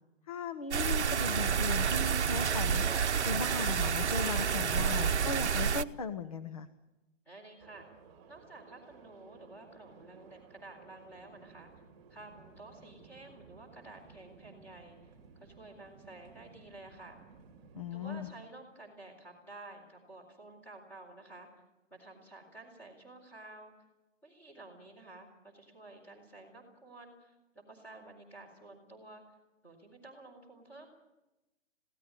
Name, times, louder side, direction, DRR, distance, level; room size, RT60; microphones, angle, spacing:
voice 1, 0.3-2.8 3.2-6.7 17.7-18.3, left 5 dB, 30° left, 9 dB, 0.8 m, -37 dB
sound 1, 0.7-5.8, right 7 dB, 60° right, 1.0 m, -29 dB
voice 2, 7.3-7.9 8.3-11.8 12.1-17.2 17.9-21.5 21.9-23.7 24.2-29.2 29.6-30.9, right 2 dB, 5° left, 0 dB, 4.2 m, -52 dB
sound 2, 7.6-18.3, right 5 dB, 20° right, 2.6 m, -57 dB
21.5 x 17.0 x 9.9 m, 1.0 s
hypercardioid pair, 160°, 38 cm